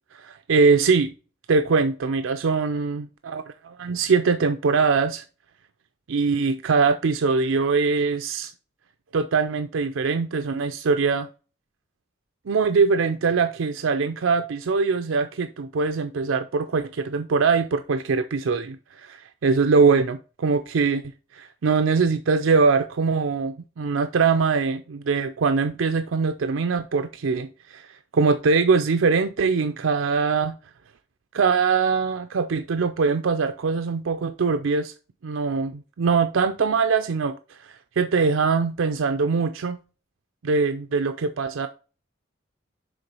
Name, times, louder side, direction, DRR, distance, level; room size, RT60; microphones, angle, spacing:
voice 1, 0.1-1.1 1.5-5.2 6.1-8.5 9.1-11.3 12.5-20.2 20.4-21.0 21.3-27.9 28.1-30.6 31.3-34.9 35.2-37.4 38.0-39.8 40.4-41.7, right 4 dB, 85° right, 0.5 m, -22 dB
7.0 x 3.7 x 5.3 m
head